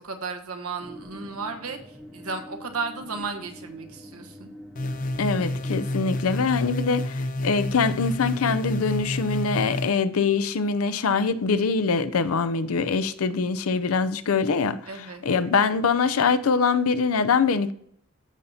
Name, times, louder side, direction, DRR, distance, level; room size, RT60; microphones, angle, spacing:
voice 1, 0.0-4.5 14.9-15.3, right 4 dB, 90° right, 1.2 m, -34 dB
sound 1, 0.8-6.7, equal, ahead, 0.9 m, -45 dB
sound 2, 4.8-9.9, left 1 dB, 35° left, 0.5 m, -29 dB
voice 2, 5.2-17.7, left 5 dB, 80° left, 0.5 m, -24 dB
14.0 x 5.7 x 2.7 m
head